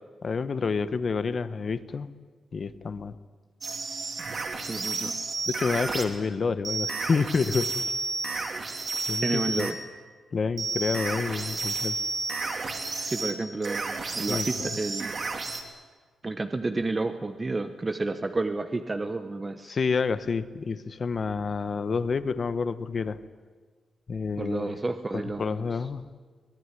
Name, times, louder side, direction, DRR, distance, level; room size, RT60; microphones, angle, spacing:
voice 1, 0.2-2.1 2.5-3.2 5.5-7.8 9.1-9.7 10.3-12.0 13.0-13.1 14.3-14.5 19.6-23.2 24.1-24.8 25.1-26.0, left 5 dB, 45° left, 13 dB, 1.1 m, -29 dB
sound 1, 3.6-6.1 6.6-9.8 10.6-15.6, right 4 dB, 45° right, 3.2 m, -31 dB
voice 2, 4.7-5.1 9.2-9.8 13.0-15.2 16.2-19.8 24.4-25.6, right 3 dB, 20° right, 8 dB, 1.0 m, -31 dB
24.0 x 19.5 x 9.8 m, 1.5 s
wide cardioid pair, 130°, 0 cm